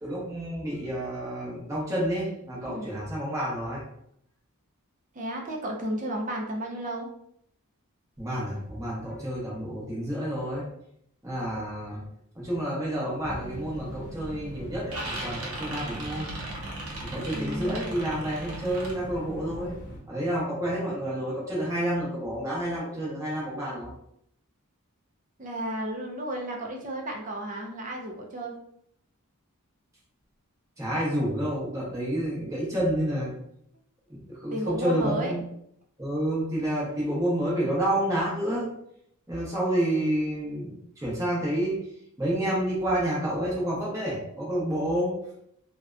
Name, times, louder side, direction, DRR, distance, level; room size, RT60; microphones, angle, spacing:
voice 1, 0.0-3.8 8.2-10.6 11.2-12.0 12.4-16.3 17.1-19.7 20.1-23.9 30.8-33.3 34.3-35.4 36.0-38.7 39.3-41.9 42.2-45.1, right 1 dB, 15° right, -5 dB, 0.8 m, -29 dB
voice 2, 2.6-3.0 5.1-7.1 17.3-17.8 25.4-28.5 34.5-35.3, right 1 dB, 35° right, 1 dB, 0.4 m, -33 dB
sound 1, 13.2-20.0, right 1 dB, 80° left, 0.7 m, -40 dB
sound 2, 13.2-13.4 13.9-14.4 14.6-18.9, right 1 dB, 70° right, 0.7 m, -38 dB
2.7 x 2.1 x 2.4 m, 0.72 s
head